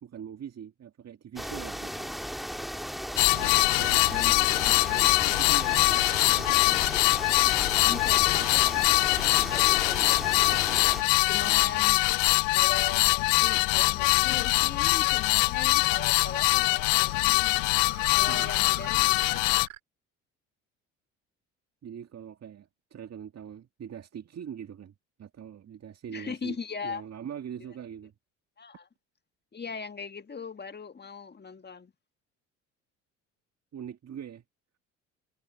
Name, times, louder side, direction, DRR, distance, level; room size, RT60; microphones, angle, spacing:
voice 1, 0.0-2.2 3.3-6.6 11.5-11.7 18.3-18.5 21.8-26.6 26.8-28.1 33.7-34.4, right 8 dB, 40° right, 2.0 m, -42 dB
sound 1, 1.4-11.0, equal, ahead, 2.2 m, -36 dB
sound 2, 3.2-19.7, left 29 dB, 75° left, 0.6 m, -23 dB
voice 2, 4.1-4.7 7.8-8.6 9.1-10.7 11.3-12.0 12.5-17.5 18.1-19.5 26.1-27.1 28.6-28.9 29.5-31.9, left 5 dB, 25° left, 1.7 m, -39 dB
sound 3, 11.7-19.8, right 14 dB, 90° right, 2.4 m, -50 dB
hypercardioid pair, 60°, 38 cm